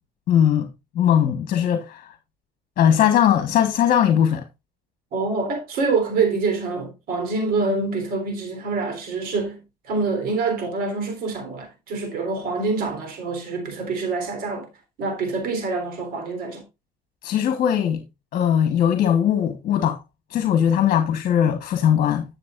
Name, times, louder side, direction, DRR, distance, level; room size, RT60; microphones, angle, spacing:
voice 1, 0.3-0.7 0.9-2.1 2.8-4.4 17.2-18.0 18.3-20.0 20.3-22.2, left 9 dB, 60° left, 1.3 m, -19 dB
voice 2, 5.1-14.7 15.0-16.6, right 4 dB, 70° right, 3.6 m, -26 dB
12.0 x 7.2 x 2.5 m
cardioid pair, 105°, 16 cm